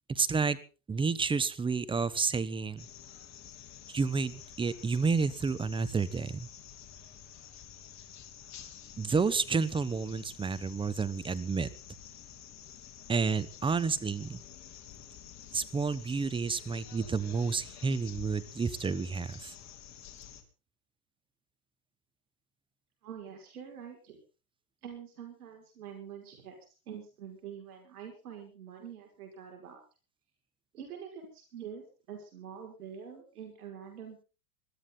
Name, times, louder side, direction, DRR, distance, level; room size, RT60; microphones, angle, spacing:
voice 1, 0.1-0.6 0.9-2.9 3.9-6.5 9.0-11.7 13.1-14.4 15.5-19.5, right 5 dB, 10° right, 15 dB, 1.0 m, -30 dB
sound 1, 2.8-20.4, left 10 dB, 40° left, 3.1 m, -50 dB
voice 2, 23.0-24.2 24.8-26.6 26.9-29.8 30.7-34.3, right 8 dB, 80° right, 3 dB, 5.9 m, -46 dB
21.5 x 13.5 x 4.0 m, 0.34 s
hypercardioid pair, 120°, 44 cm